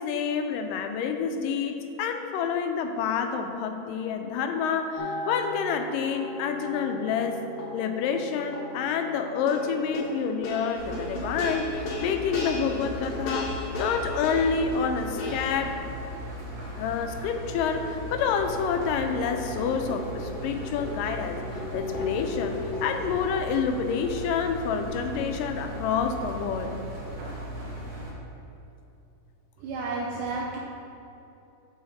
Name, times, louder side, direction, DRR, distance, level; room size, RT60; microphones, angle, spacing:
voice 1, 0.0-7.4 7.7-15.7 16.7-21.4 21.7-26.8, left 6 dB, 85° left, 6 dB, 2.2 m, -28 dB
sound 1, 5.0-15.7 17.8-23.1, left 2 dB, 65° left, 1.7 m, -36 dB
Engine, 10.7-28.1, right 1 dB, 65° right, 2.4 m, -37 dB
voice 2, 29.6-30.6, right 3 dB, 80° right, -3 dB, 2.1 m, -31 dB
6.6 x 6.4 x 4.0 m, 2.8 s
omnidirectional pair, 3.8 m